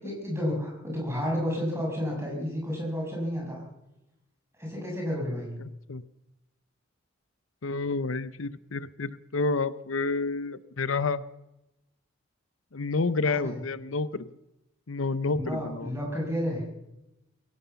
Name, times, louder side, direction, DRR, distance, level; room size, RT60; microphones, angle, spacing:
voice 1, 0.0-3.6 4.6-5.5 13.2-13.6 15.3-16.6, equal, 10° right, -1 dB, 7.1 m, -31 dB
voice 2, 7.6-11.2 12.7-14.3 14.9-15.9, left 3 dB, 75° left, 15 dB, 0.7 m, -29 dB
22.0 x 17.0 x 7.0 m, 0.91 s
head